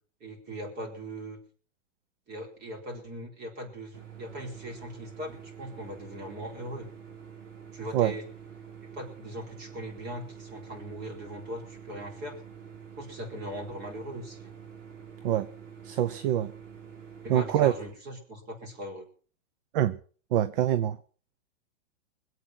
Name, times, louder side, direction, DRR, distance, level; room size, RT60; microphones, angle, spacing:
voice 1, 0.2-1.4 2.3-6.9 7.7-8.2 8.9-12.4 12.9-14.5 17.2-19.1, equal, 25° right, 3 dB, 4.3 m, -40 dB
sound 1, 3.9-17.9, right 7 dB, 70° right, 4.6 m, -47 dB
voice 2, 15.8-16.5 17.3-17.7 19.7-20.0 20.3-21.0, right 11 dB, 45° right, 15 dB, 0.8 m, -25 dB
21.5 x 8.3 x 6.1 m, 0.42 s
hypercardioid pair, 150°, 38 cm